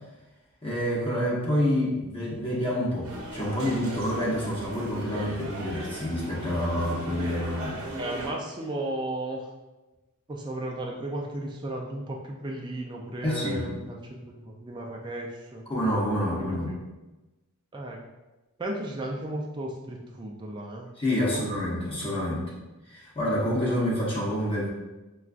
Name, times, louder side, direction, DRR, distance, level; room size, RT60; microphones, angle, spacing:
voice 1, 0.6-7.8 13.2-13.6 15.7-16.7 21.0-22.5 22.9-24.7, equal, 25° left, -5 dB, 0.8 m, -28 dB
sound 1, 3.0-8.3, right 1 dB, 60° right, 0.7 m, -37 dB
voice 2, 7.9-9.5 10.3-15.6 16.2-16.7 17.7-18.1 18.6-20.9 21.2-21.4, right 1 dB, 20° right, -1 dB, 0.3 m, -35 dB
5.5 x 2.3 x 2.4 m, 1.1 s
head